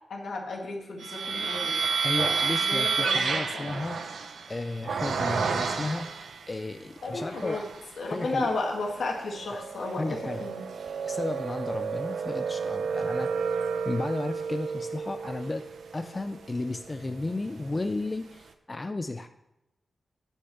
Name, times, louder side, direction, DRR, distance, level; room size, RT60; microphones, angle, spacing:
voice 1, 0.1-1.8 2.6-3.8 7.0-7.6 8.0-10.6, left 3 dB, 85° left, 0 dB, 2.0 m, -33 dB
sound 1, 1.0-6.5 7.1-7.9 8.3-17.5, right 5 dB, 90° right, 0.8 m, -31 dB
voice 2, 2.0-4.0 4.5-7.7 8.0-8.5 9.5-9.7 10.0-10.5 11.0-13.3 13.9-19.3, left 2 dB, 20° left, 8 dB, 0.4 m, -33 dB
10.0 x 5.5 x 5.7 m, 0.92 s
wide cardioid pair, 160°, 0 cm